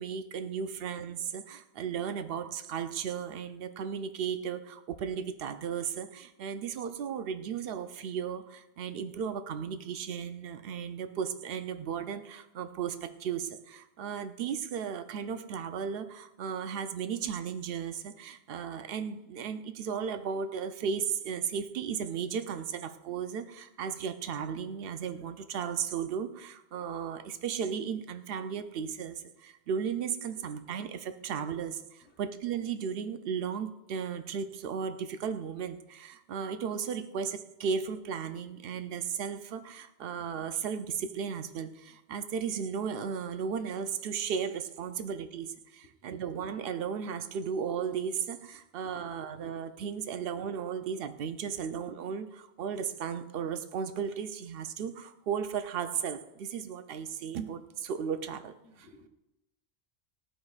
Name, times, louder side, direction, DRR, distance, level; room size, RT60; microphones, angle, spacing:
voice 1, 0.0-58.9, right 7 dB, 65° right, 10 dB, 0.7 m, -35 dB
voice 2, 45.8-46.2 48.8-48.9 49.9-50.0 58.6-59.1, equal, 85° left, 3 dB, 1.3 m, -59 dB
14.5 x 5.0 x 2.4 m, 0.93 s
omnidirectional pair, 1.1 m